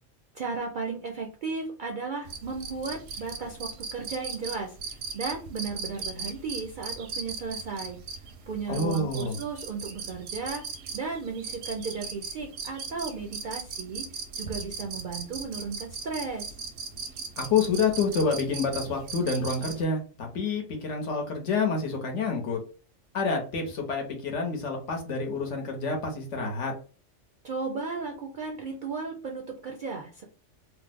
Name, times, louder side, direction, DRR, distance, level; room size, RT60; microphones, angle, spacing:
voice 1, 0.3-8.0 8.5-10.6 10.9-14.1 14.4-16.5 27.4-30.2, right 4 dB, 60° right, 1 dB, 0.5 m, -35 dB
sound 1, 2.3-19.8, right 5 dB, 85° right, 1.0 m, -39 dB
voice 2, 8.7-9.4 17.4-22.6 23.1-26.7, left 4 dB, 70° left, 2 dB, 1.2 m, -28 dB
3.1 x 2.0 x 3.4 m, 0.36 s
omnidirectional pair, 1.3 m